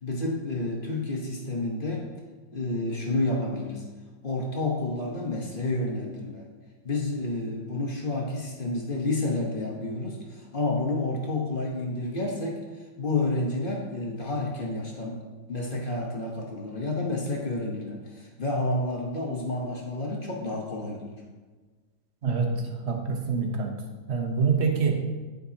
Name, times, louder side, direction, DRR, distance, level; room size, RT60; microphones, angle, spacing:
voice 1, 0.0-2.1 2.5-3.8 4.2-6.4 6.8-15.2 15.5-21.2, left 2 dB, 35° left, -1 dB, 1.0 m, -30 dB
voice 2, 22.2-23.8 24.1-25.0, right 5 dB, 45° right, 3 dB, 1.0 m, -26 dB
11.0 x 5.3 x 2.8 m, 1.3 s
omnidirectional pair, 1.9 m